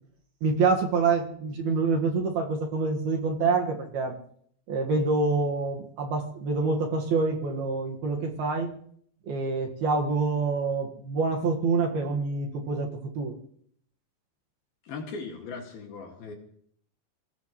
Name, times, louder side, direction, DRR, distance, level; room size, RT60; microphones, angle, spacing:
voice 1, 0.4-4.1 4.7-8.7 9.2-13.4, right 4 dB, 60° right, 1 dB, 3.0 m, -26 dB
voice 2, 14.8-16.3, left 4 dB, 55° left, 2 dB, 3.4 m, -38 dB
26.0 x 17.5 x 3.1 m, 0.64 s
omnidirectional pair, 5.9 m